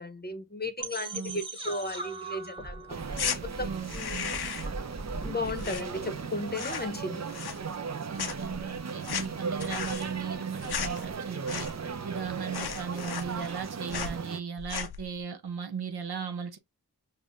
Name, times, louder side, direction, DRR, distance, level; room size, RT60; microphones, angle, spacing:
voice 1, 0.0-3.0 3.4-4.4 5.2-7.3, left 2 dB, 25° left, 0.7 m, -35 dB
sound 1, 0.8-5.8, right 2 dB, 15° right, 1.2 m, -39 dB
voice 2, 1.1-1.4 3.6-4.3 8.1-11.7 12.0-16.6, right 6 dB, 80° right, 0.7 m, -37 dB
sound 2, 2.9-14.4, right 5 dB, 45° right, 0.5 m, -37 dB
sound 3, 3.1-3.4 3.8-4.8 5.0-6.2 6.5-7.0 7.3-7.9 8.2-12.0 12.2-12.3 12.5-13.6 13.9-14.2 14.6-15.1, left 7 dB, 85° left, 0.5 m, -36 dB
5.4 x 2.1 x 2.4 m
wide cardioid pair, 50°, 38 cm